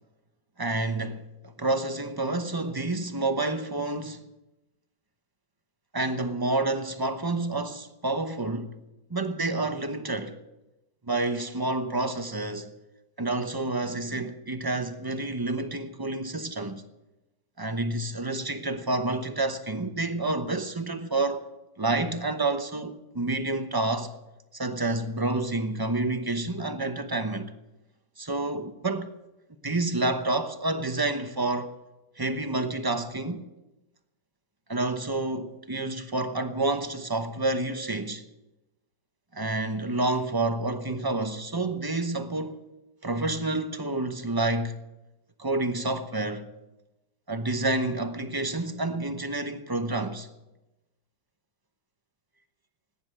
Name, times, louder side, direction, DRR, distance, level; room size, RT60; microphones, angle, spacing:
voice 1, 0.6-4.3 5.9-8.7 9.1-10.4 11.1-12.7 13.2-16.8 17.6-21.4 21.8-24.1 24.5-27.5 28.2-29.1 29.6-31.7 32.2-33.5 34.7-38.2 39.3-42.6 43.0-44.8 45.4-46.5 47.3-50.3, right 2 dB, 25° right, 0.4 m, -29 dB
17.5 x 10.0 x 7.6 m
omnidirectional pair, 1.9 m